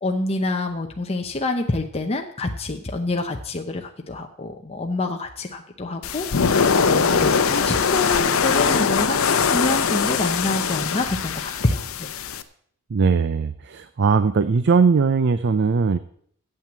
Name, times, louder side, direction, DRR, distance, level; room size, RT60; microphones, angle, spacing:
voice 1, 0.0-12.1, left 2 dB, 30° left, 3 dB, 0.8 m, -27 dB
sound 1, 6.0-12.4, left 6 dB, 70° left, 0.7 m, -21 dB
voice 2, 12.9-16.0, right 5 dB, 55° right, 12 dB, 0.5 m, -19 dB
8.9 x 7.8 x 7.4 m, 0.63 s
head